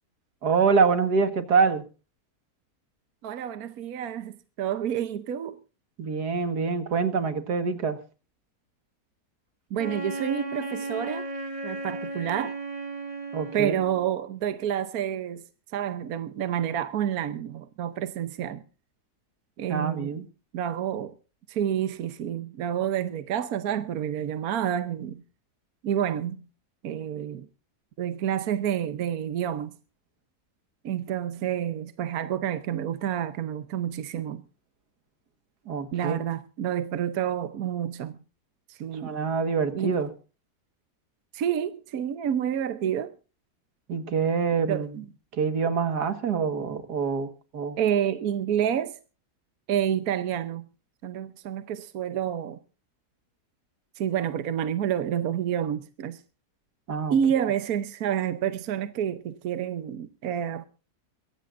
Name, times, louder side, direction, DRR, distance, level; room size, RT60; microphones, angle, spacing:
voice 1, 0.4-1.8 6.0-8.0 13.3-13.7 19.7-20.2 35.7-36.2 38.9-40.1 43.9-45.0 45.3-47.8 56.9-57.2, right 5 dB, 90° right, 2.2 m, -25 dB
voice 2, 3.2-5.6 9.7-11.3 11.6-12.6 13.5-15.4 15.7-18.6 19.6-20.2 20.5-21.1 21.5-25.2 25.8-26.4 26.8-27.5 28.0-29.7 30.8-34.4 35.9-38.2 38.7-39.1 39.7-40.0 41.3-43.1 44.7-44.9 47.8-49.0 49.7-50.7 51.0-52.6 54.0-56.2 57.1-60.7, right 9 dB, 70° right, 1.3 m, -29 dB
Wind instrument woodwind instrument, 9.8-14.2, right 2 dB, 20° right, 2.1 m, -35 dB
22.5 x 16.5 x 2.5 m
omnidirectional pair, 1.7 m